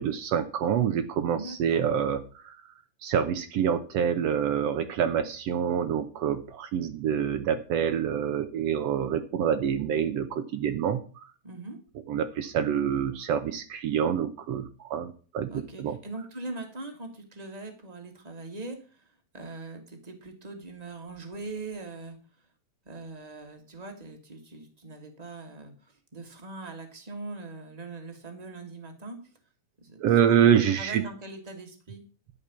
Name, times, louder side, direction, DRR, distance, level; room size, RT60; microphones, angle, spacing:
voice 1, 0.0-2.6 3.0-11.0 12.1-15.5 15.8-16.0 30.0-31.0, right 8 dB, 75° right, 9 dB, 1.5 m, -26 dB
voice 2, 1.3-1.9 11.4-11.8 15.5-19.1 19.3-22.2 22.8-29.2 29.8-30.0 30.3-32.0, right 2 dB, 15° right, 4 dB, 1.5 m, -41 dB
12.0 x 5.3 x 8.3 m, 0.38 s
omnidirectional pair, 4.0 m